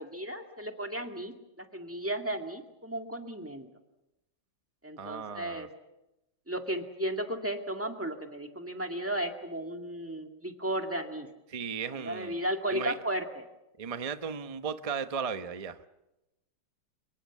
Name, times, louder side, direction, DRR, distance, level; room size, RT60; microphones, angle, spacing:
voice 1, 0.0-3.7 4.8-5.7 6.5-11.3 12.0-13.4, right 1 dB, 5° right, 4 dB, 1.9 m, -34 dB
voice 2, 5.0-5.7 11.5-12.4 12.7-12.9 13.8-15.9, right 6 dB, 40° right, 10 dB, 0.5 m, -36 dB
26.0 x 23.0 x 7.3 m, 0.94 s
omnidirectional pair, 2.3 m